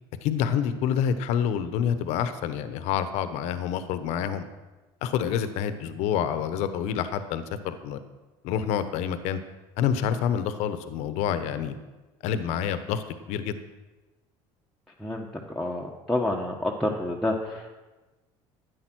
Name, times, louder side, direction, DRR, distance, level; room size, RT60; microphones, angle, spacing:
voice 1, 0.2-4.4 5.0-8.0 8.4-9.4 9.8-11.7 12.2-13.6, left 8 dB, 75° left, 11 dB, 1.0 m, -27 dB
voice 2, 15.0-17.7, left 1 dB, ahead, -3 dB, 1.2 m, -29 dB
12.5 x 9.6 x 6.2 m, 1.2 s
cardioid pair, 130°, 12 cm